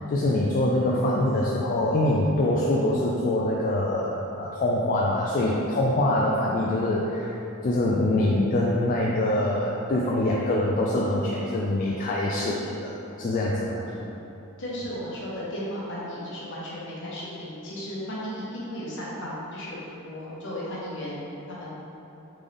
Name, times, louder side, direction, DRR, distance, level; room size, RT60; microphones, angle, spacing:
voice 1, 0.1-7.4 7.6-13.8, left 1 dB, 40° left, -4 dB, 0.3 m, -24 dB
voice 2, 14.6-21.7, equal, 60° left, -7 dB, 1.0 m, -35 dB
3.8 x 3.6 x 3.3 m, 2.9 s
head